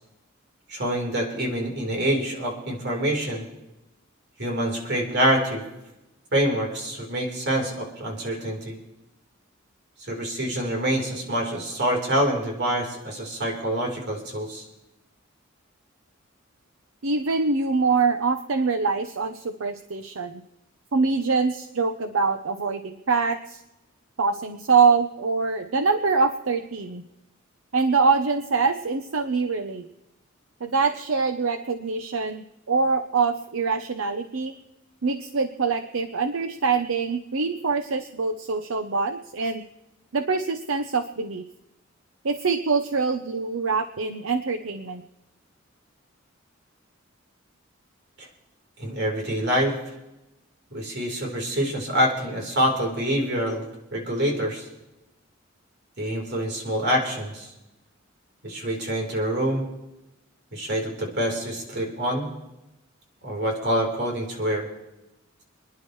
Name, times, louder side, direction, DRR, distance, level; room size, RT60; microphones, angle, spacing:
voice 1, 0.7-3.4 4.4-5.6 6.3-8.7 10.0-14.7 48.2-48.3 48.8-49.8 50.7-53.7 53.9-54.7 56.0-57.5 58.4-59.7 60.5-62.3 63.2-64.7, equal, 55° right, 0 dB, 4.0 m, -26 dB
voice 2, 17.0-20.4 20.9-23.6 24.2-27.0 27.7-29.9 30.6-34.5 35.0-39.6 40.1-41.4 42.2-45.0, right 4 dB, 90° right, 7 dB, 0.8 m, -24 dB
28.0 x 10.5 x 3.2 m, 0.95 s
head